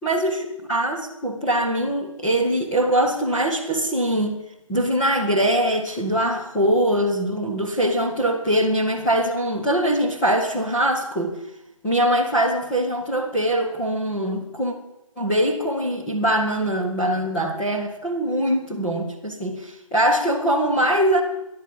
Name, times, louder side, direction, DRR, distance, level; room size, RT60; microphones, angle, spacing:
voice 1, 0.0-4.3 4.7-11.3 11.8-14.7 15.2-21.2, right 1 dB, 5° left, -5 dB, 1.3 m, -22 dB
14.0 x 11.5 x 8.9 m, 0.89 s
hypercardioid pair, 175°, 17 cm